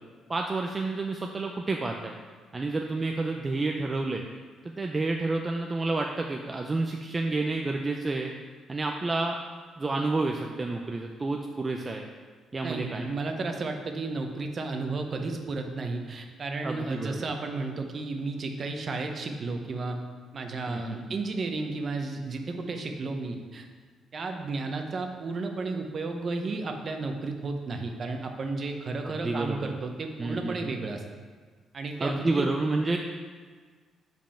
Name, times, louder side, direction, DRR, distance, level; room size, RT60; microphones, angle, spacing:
voice 1, 0.3-2.1 2.5-4.2 4.6-8.3 8.7-9.4 9.8-12.1 12.5-13.1 16.6-17.3 20.7-21.1 29.0-29.7 30.2-30.7 32.0-33.0, right 3 dB, 25° right, 2 dB, 0.5 m, -29 dB
voice 2, 12.6-20.0 20.3-23.7 24.1-31.0 31.7-32.5, right 3 dB, 45° right, 4 dB, 0.9 m, -33 dB
5.3 x 5.2 x 5.7 m, 1.5 s
cardioid pair, 90°, 0 cm